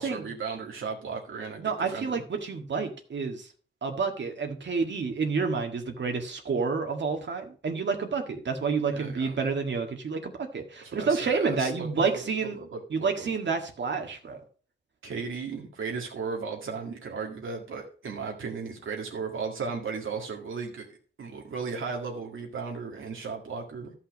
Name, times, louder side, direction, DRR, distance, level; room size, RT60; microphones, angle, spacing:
voice 1, 0.0-2.2 8.9-9.4 10.8-13.4 15.0-20.9 21.2-23.9, right 5 dB, 85° right, 0 dB, 2.0 m, -36 dB
voice 2, 1.6-3.5 3.8-12.6 12.9-14.4, right 5 dB, 65° right, 4 dB, 1.7 m, -29 dB
13.0 x 5.8 x 5.1 m, 0.40 s
wide cardioid pair, 115°, 20 cm